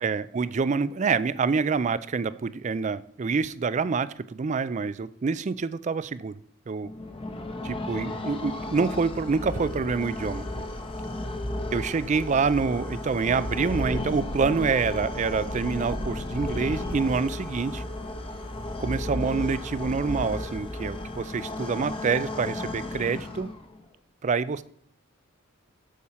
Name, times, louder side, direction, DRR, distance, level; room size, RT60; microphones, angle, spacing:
voice 1, 0.0-6.4 6.7-6.9 7.6-10.6 11.7-17.8 18.8-23.5 24.2-24.6, right 5 dB, 35° right, 16 dB, 0.3 m, -27 dB
sound 1, 6.8-23.8, left 1 dB, 25° left, 0.9 m, -34 dB
8.4 x 7.1 x 4.3 m, 0.65 s
head